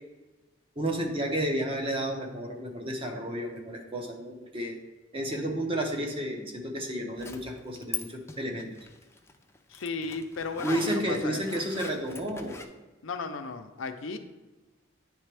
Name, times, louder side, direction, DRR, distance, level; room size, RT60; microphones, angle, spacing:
voice 1, 0.8-4.8 5.1-8.7 10.6-12.6, right 1 dB, 30° right, 2 dB, 0.9 m, -31 dB
Zipper (clothing), 7.2-8.0 8.3-12.7, left 4 dB, 15° left, 0.4 m, -40 dB
voice 2, 9.7-11.4 13.0-14.2, left 4 dB, 80° left, 8 dB, 0.5 m, -35 dB
9.6 x 3.4 x 3.4 m, 1.2 s
head